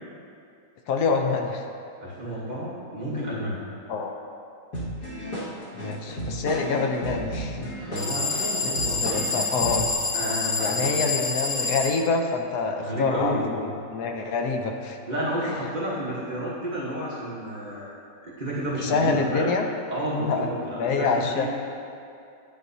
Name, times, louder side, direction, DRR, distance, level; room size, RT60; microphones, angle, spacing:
voice 1, 0.9-1.6 3.9-4.1 5.8-7.7 8.6-9.9 10.6-15.0 18.8-19.7 20.2-21.5, left 4 dB, 70° left, 3 dB, 1.1 m, -26 dB
voice 2, 2.0-3.6 7.9-9.0 10.1-11.0 12.8-13.4 15.1-17.9 18.2-19.5 19.9-21.5, equal, 30° right, -8 dB, 1.2 m, -30 dB
sound 1, 4.7-9.9, right 1 dB, 55° left, 2.1 m, -33 dB
sound 2, 8.0-11.9, left 4 dB, 35° left, 0.6 m, -27 dB
9.9 x 8.8 x 2.7 m, 2.5 s
omnidirectional pair, 1.8 m